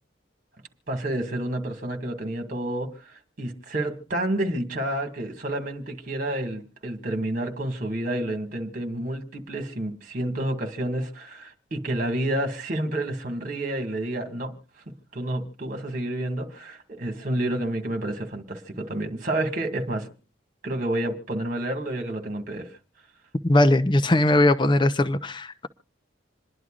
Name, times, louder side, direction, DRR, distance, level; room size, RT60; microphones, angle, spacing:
voice 1, 0.9-14.5 15.1-20.1 20.6-22.7, right 1 dB, 45° right, 2.0 m, -29 dB
voice 2, 23.4-25.7, left 1 dB, 25° left, 0.6 m, -20 dB
27.5 x 11.0 x 2.5 m
head